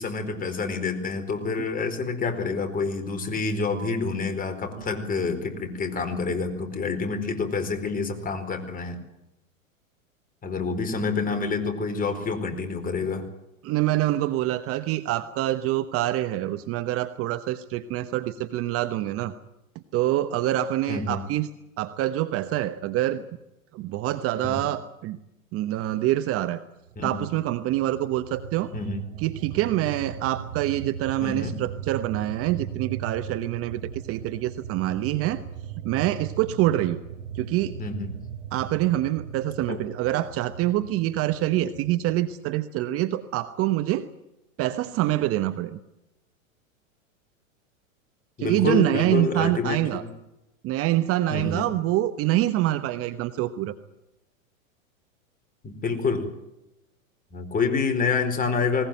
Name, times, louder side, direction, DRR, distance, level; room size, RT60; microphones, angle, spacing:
voice 1, 0.0-9.0 10.4-13.3 20.9-21.2 24.4-24.5 27.0-27.3 28.7-29.0 31.2-31.6 37.8-38.1 39.7-39.8 48.4-50.1 51.3-51.7 55.6-56.3 57.3-58.9, left 4 dB, 20° left, 6 dB, 4.4 m, -28 dB
voice 2, 13.6-19.3 19.9-21.5 21.8-23.2 23.7-25.2 25.5-26.6 27.0-28.7 29.2-35.4 35.8-37.0 37.3-37.8 38.5-44.1 44.6-45.8 48.4-50.0 50.6-53.7, right 14 dB, 35° right, 12 dB, 1.1 m, -25 dB
sound 1, 26.9-42.3, right 9 dB, 65° right, 1.4 m, -38 dB
20.0 x 19.5 x 9.1 m, 0.90 s
hypercardioid pair, 110°, 41 cm